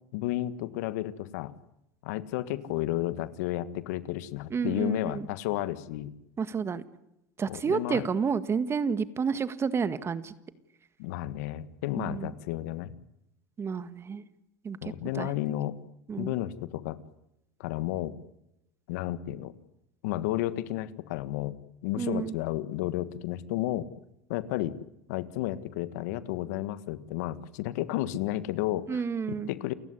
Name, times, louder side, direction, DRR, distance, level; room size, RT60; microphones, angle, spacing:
voice 1, 0.1-1.5 2.0-6.1 7.5-8.1 11.0-12.9 14.8-15.8 16.2-17.0 17.6-18.1 18.9-19.5 20.0-21.6 21.8-23.9 24.3-24.8 25.1-29.0 29.3-29.7, left 14 dB, 80° left, 15 dB, 1.5 m, -32 dB
voice 2, 4.5-5.3 6.4-6.8 7.4-10.3 12.0-12.3 13.6-14.2 14.6-14.8 15.2-15.3 16.1-16.3 22.0-22.3 28.9-29.5, right 6 dB, 30° right, 13 dB, 1.8 m, -30 dB
29.5 x 16.0 x 9.8 m, 0.86 s
supercardioid pair, 95°, 9 cm